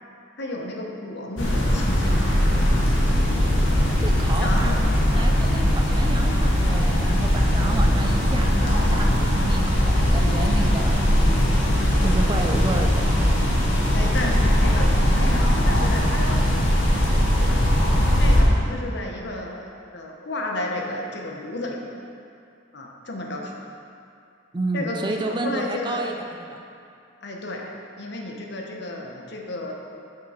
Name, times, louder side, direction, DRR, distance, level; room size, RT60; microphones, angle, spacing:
voice 1, 0.4-2.3 3.6-3.9 4.4-4.8 13.9-17.0 17.4-17.6 18.2-21.8 22.7-23.5 24.7-26.1 27.2-29.7, left 1 dB, 60° left, 0 dB, 0.9 m, -32 dB
sound 1, 1.4-18.4, equal, 75° left, 1.3 m, -20 dB
voice 2, 4.0-4.8 5.1-13.1 24.5-26.6, right 2 dB, 25° right, 3 dB, 0.4 m, -31 dB
6.7 x 5.7 x 5.0 m, 2.5 s
head